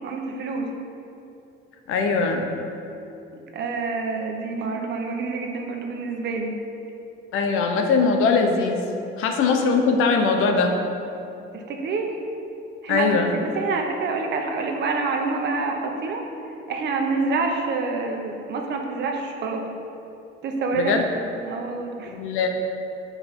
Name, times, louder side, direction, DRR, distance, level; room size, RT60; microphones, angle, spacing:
voice 1, 0.0-0.7 3.5-6.5 11.5-12.1 12.8-13.1 13.4-16.2 16.7-19.6 20.4-21.0 21.4-22.1, right 4 dB, 55° right, 2 dB, 1.0 m, -27 dB
voice 2, 1.9-2.5 7.3-8.8 9.2-10.7 12.9-13.3 20.7-21.0 22.1-22.5, left 4 dB, 80° left, 3 dB, 0.9 m, -21 dB
7.9 x 4.7 x 5.4 m, 2.8 s
cardioid pair, 150°, 21 cm